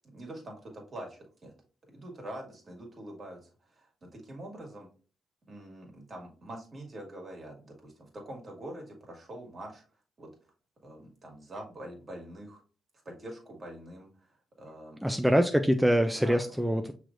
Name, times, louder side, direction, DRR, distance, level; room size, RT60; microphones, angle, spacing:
voice 1, 0.0-1.5 1.9-4.9 5.5-9.8 10.2-10.3 10.8-12.6 13.0-15.0 16.2-16.4, right 1 dB, 45° right, 0 dB, 1.7 m, -45 dB
voice 2, 15.0-16.9, equal, 5° right, 6 dB, 0.4 m, -24 dB
5.9 x 3.2 x 2.5 m, 0.38 s
supercardioid pair, 50°, 0 cm